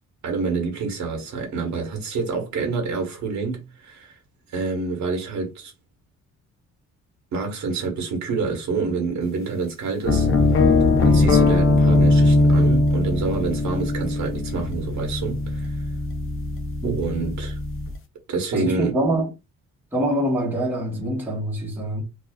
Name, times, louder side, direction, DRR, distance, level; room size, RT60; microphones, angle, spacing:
voice 1, 0.2-4.2 4.5-5.7 7.3-10.3 11.0-15.8 16.8-17.6 18.3-18.9, right 4 dB, 70° right, 1.1 m, -27 dB
sound 1, 10.0-17.9, left 2 dB, 45° left, 0.6 m, -20 dB
voice 2, 18.5-19.3 19.9-22.0, right 1 dB, 5° right, 0.9 m, -24 dB
2.5 x 2.3 x 2.2 m
cardioid pair, 125°, 29 cm